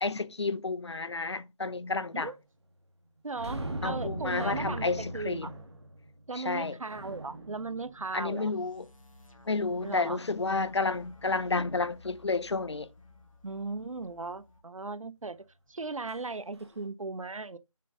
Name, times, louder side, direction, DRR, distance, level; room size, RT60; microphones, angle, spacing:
voice 1, 0.0-2.3 3.8-5.5 6.4-6.8 8.1-8.9 9.5-12.9, left 3 dB, 55° left, 0.5 m, -31 dB
voice 2, 3.2-5.5 6.3-8.5 9.8-10.2 13.4-17.6, right 3 dB, 75° right, 0.6 m, -37 dB
sound 1, 3.3-8.7 16.1-16.2 16.6-16.8, right 1 dB, 55° right, 1.3 m, -39 dB
sound 2, 8.3-14.6, left 2 dB, 75° left, 1.6 m, -54 dB
6.5 x 3.7 x 3.9 m
figure-of-eight pair, 160°, 17 cm